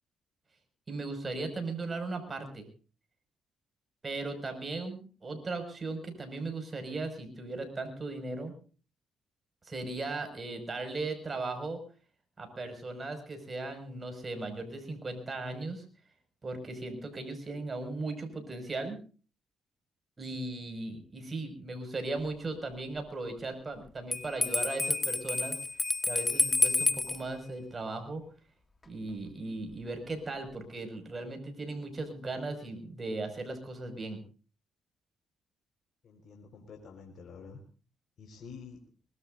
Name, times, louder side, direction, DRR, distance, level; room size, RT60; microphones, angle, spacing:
voice 1, 0.9-2.7 4.0-8.5 9.6-11.8 12.4-15.8 16.4-19.0 20.2-25.6 26.0-28.2 28.9-34.2, right 2 dB, 30° right, 6 dB, 5.8 m, -37 dB
Bell, 24.1-27.2, left 3 dB, 25° left, 1.4 m, -29 dB
voice 2, 36.0-37.6 38.2-38.8, left 5 dB, 60° left, 3 dB, 4.6 m, -48 dB
23.5 x 20.0 x 2.6 m, 0.38 s
cardioid pair, 90°, 0 cm